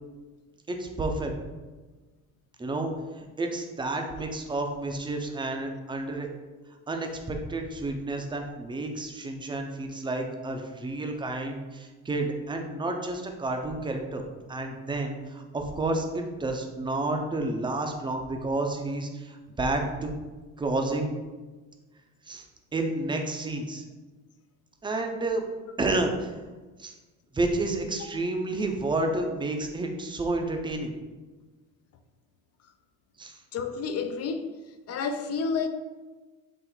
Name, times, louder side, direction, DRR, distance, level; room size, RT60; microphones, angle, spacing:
voice 1, 0.7-1.3 2.6-6.3 6.9-14.2 14.5-20.1 20.6-21.1 22.3-22.4 22.7-23.8 24.8-25.4 25.8-26.4 26.8-26.9 27.3-30.9 33.2-33.4, right 2 dB, 15° right, 0.6 m, -30 dB
voice 2, 33.5-34.5 34.9-35.7, left 5 dB, 45° left, 0.5 m, -30 dB
4.0 x 2.5 x 4.4 m
supercardioid pair, 90°, 34 cm